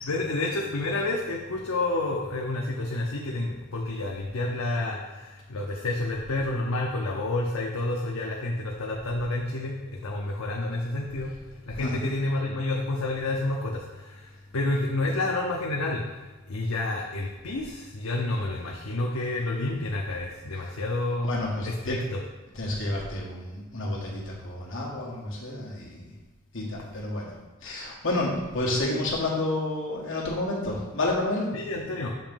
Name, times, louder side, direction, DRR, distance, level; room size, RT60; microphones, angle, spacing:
voice 1, 0.0-21.3 21.6-22.2 31.5-32.1, left 2 dB, 90° left, -1 dB, 0.7 m, -29 dB
voice 2, 11.7-12.0 20.6-20.8 21.2-22.0 22.5-26.1 26.5-31.5, left 2 dB, 65° left, -3 dB, 1.6 m, -30 dB
7.0 x 3.0 x 5.2 m, 1.2 s
head